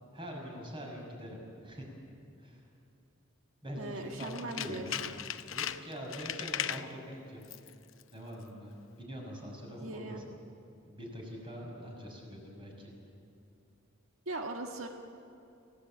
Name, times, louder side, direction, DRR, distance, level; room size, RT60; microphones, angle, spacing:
voice 1, 0.1-1.9 2.4-2.6 3.6-5.0 5.5-7.4 8.1-10.2 10.9-12.9, equal, 25° right, -1 dB, 6.1 m, -44 dB
voice 2, 3.8-5.1 9.8-10.2 14.2-14.9, right 2 dB, 85° right, 3 dB, 1.6 m, -39 dB
Tools, 4.1-6.9 7.4-7.7 8.0-8.1, left 10 dB, 70° left, 0.8 m, -38 dB
28.0 x 16.5 x 8.8 m, 2.6 s
head